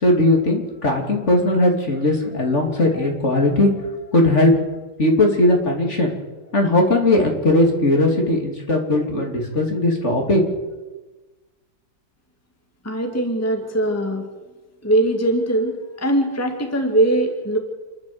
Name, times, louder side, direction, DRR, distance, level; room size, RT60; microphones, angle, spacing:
voice 1, 0.0-3.7 4.1-4.5 5.0-6.1 6.5-10.4, left 1 dB, 45° left, 2 dB, 3.1 m, -18 dB
voice 2, 12.8-14.3 14.8-17.6, right 1 dB, 10° left, 4 dB, 1.9 m, -21 dB
28.5 x 11.5 x 7.9 m, 1.2 s
omnidirectional pair, 1.8 m